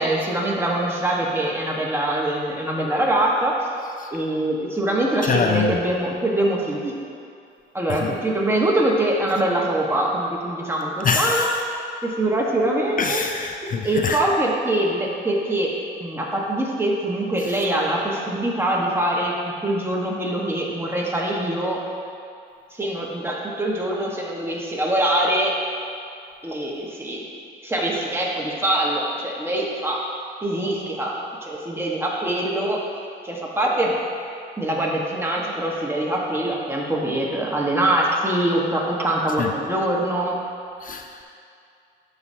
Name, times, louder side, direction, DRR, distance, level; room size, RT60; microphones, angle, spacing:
voice 1, 0.0-3.5 4.1-7.0 7.7-11.5 12.0-13.2 13.8-15.7 16.0-19.3 19.6-21.8 22.8-25.6 26.4-27.3 27.6-30.1 30.4-32.8 33.2-33.9 34.6-40.4, right 1 dB, 10° right, -3 dB, 1.4 m, -23 dB
voice 2, 5.2-5.7 7.9-8.2 11.0-11.5 13.0-14.2 39.4-39.5 40.8-41.2, left 5 dB, 45° left, 4 dB, 0.5 m, -24 dB
12.5 x 4.9 x 2.8 m, 2.4 s
cardioid pair, 90°, 20 cm